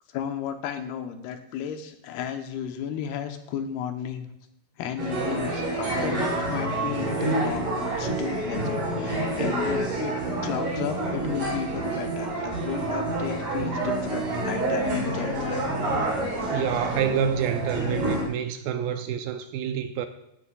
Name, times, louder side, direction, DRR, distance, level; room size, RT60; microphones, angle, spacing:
voice 1, 0.1-4.3 4.8-10.1 10.4-15.7 16.3-16.8, left 8 dB, 85° left, 2.9 m, -34 dB
sound 1, 5.0-18.3, right 1 dB, 50° right, 4.7 m, -28 dB
voice 2, 16.5-20.1, right 9 dB, 80° right, 2.2 m, -27 dB
16.5 x 9.6 x 2.3 m
omnidirectional pair, 4.4 m